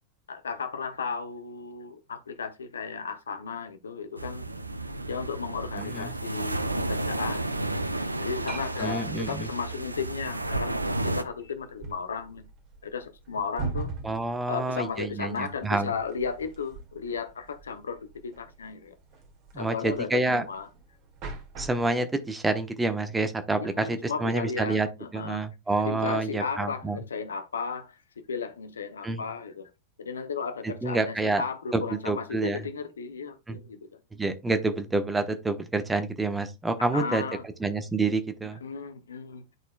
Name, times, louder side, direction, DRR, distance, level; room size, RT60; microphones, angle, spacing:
voice 1, 0.3-4.5 5.1-7.5 8.2-12.4 12.8-13.9 14.5-19.0 19.6-20.7 23.6-25.5 25.8-29.7 30.0-34.0 36.9-37.4 38.6-39.4, left 5 dB, 70° left, 0.8 m, -35 dB
sound 1, 4.2-11.2, right 2 dB, 85° right, 0.5 m, -32 dB
voice 2, 5.8-6.1 8.8-9.5 14.0-15.9 19.5-20.4 21.6-24.9 25.1-27.0 29.0-29.2 30.6-31.4 31.7-32.6 33.5-33.6 34.1-37.2 37.6-38.6, right 3 dB, 10° right, 0.9 m, -28 dB
sound 2, 8.2-21.9, right 3 dB, 40° right, 1.9 m, -42 dB
10.5 x 4.1 x 2.3 m
figure-of-eight pair, 90°, 0 cm